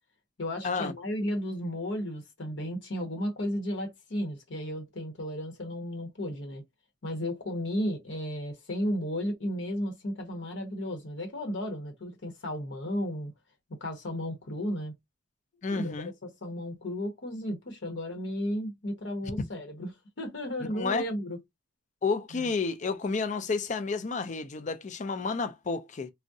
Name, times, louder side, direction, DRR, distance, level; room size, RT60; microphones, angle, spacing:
voice 1, 0.4-6.6 7.0-13.3 13.7-14.9 15.7-21.4 22.3-22.5, equal, 70° left, 0.9 m, -34 dB
voice 2, 15.6-16.1 20.7-21.0 22.0-26.1, left 4 dB, 40° left, 0.4 m, -31 dB
3.5 x 2.1 x 2.6 m
head